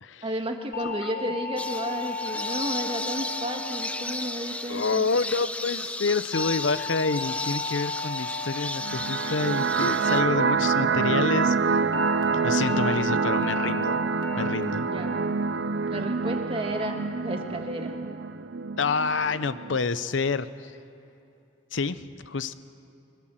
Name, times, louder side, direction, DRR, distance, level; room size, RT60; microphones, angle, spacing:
voice 1, 0.2-5.0 12.5-12.9 14.8-15.1 15.9-17.0 17.2-17.9, right 1 dB, 30° right, 4 dB, 1.7 m, -32 dB
sound 1, 0.7-5.2 6.3-10.8 11.9-12.2 12.6-13.0 13.4-13.8 14.2-14.6 15.0-15.4 15.8-16.2, left 4 dB, 50° left, 1.8 m, -36 dB
voice 2, 0.8-1.2 4.7-11.5 12.4-14.0 14.4-14.9 18.8-20.7 21.7-22.5, left 4 dB, 90° left, 14 dB, 0.7 m, -28 dB
sound 2, 1.6-10.2, left 2 dB, 5° left, 0.5 m, -34 dB
sound 3, 8.8-19.8, right 5 dB, 75° right, 0.6 m, -26 dB
22.5 x 18.0 x 7.8 m, 2.7 s
head